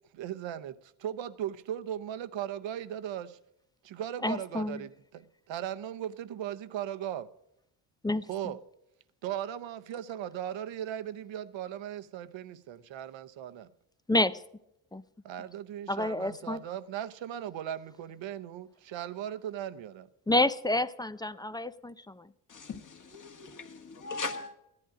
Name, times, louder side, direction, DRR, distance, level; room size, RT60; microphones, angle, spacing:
voice 1, 0.1-3.4 3.8-7.3 8.3-8.6 9.2-13.7 15.2-20.1, right 10 dB, 65° right, 0.9 m, -38 dB
voice 2, 4.2-4.8 8.0-8.3 14.1-14.4 14.9-15.0 15.9-16.6 20.3-22.3, left 2 dB, 10° left, 0.4 m, -29 dB
voice 3, 22.5-24.5, left 4 dB, 40° left, 1.8 m, -39 dB
14.5 x 11.0 x 4.9 m
cardioid pair, 75°, 48 cm